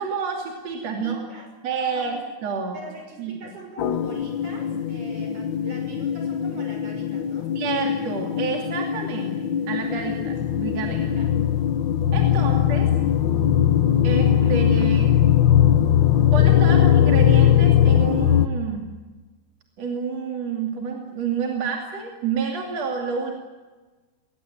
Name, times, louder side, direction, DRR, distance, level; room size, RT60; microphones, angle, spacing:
voice 1, 0.0-1.2 1.6-2.8 3.2-3.5 7.6-11.2 12.1-12.9 14.0-15.2 16.3-18.9 19.8-23.3, right 5 dB, 60° right, 1 dB, 3.6 m, -29 dB
voice 2, 0.7-1.5 1.8-2.1 2.7-7.5 11.2-11.3 12.2-12.5 14.4-14.5 14.8-14.9, right 2 dB, 90° right, 2 dB, 7.8 m, -42 dB
sound 1, 3.8-18.5, left 10 dB, 80° left, 1.0 m, -20 dB
22.5 x 19.0 x 9.2 m, 1.2 s
omnidirectional pair, 3.3 m